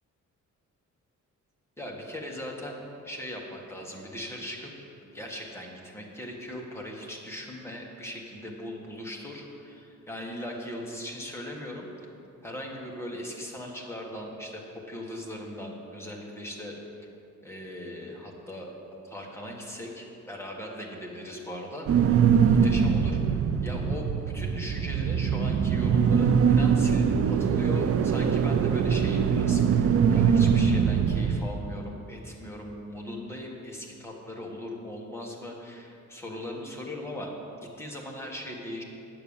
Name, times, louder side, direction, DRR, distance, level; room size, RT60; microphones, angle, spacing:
voice 1, 1.8-4.7 5.1-11.9 12.4-17.1 17.4-18.7 19.0-24.1 24.3-38.8, left 1 dB, 10° left, -1 dB, 1.4 m, -39 dB
sound 1, 21.9-31.4, right 7 dB, 50° right, 0.5 m, -23 dB
9.2 x 6.9 x 7.1 m, 2.8 s
wide cardioid pair, 145°, 31 cm